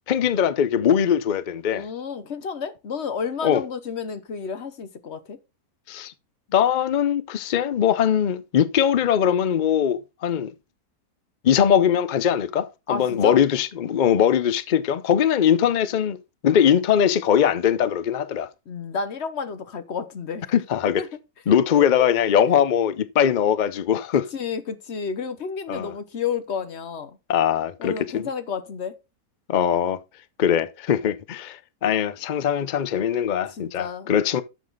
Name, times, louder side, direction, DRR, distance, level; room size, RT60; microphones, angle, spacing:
voice 1, 0.1-1.8 3.4-3.6 5.9-6.1 6.5-10.5 11.4-16.2 16.4-18.5 20.5-21.1 21.5-24.3 25.7-25.9 27.3-28.3 29.5-30.0 30.4-34.4, left 9 dB, 80° left, 0.4 m, -21 dB
voice 2, 1.7-5.4 12.9-13.4 18.7-20.5 21.0-21.1 21.5-22.3 23.3-23.4 24.3-27.2 27.8-29.0 33.5-34.1, left 6 dB, 50° left, 1.2 m, -31 dB
10.0 x 6.7 x 3.9 m
omnidirectional pair, 1.6 m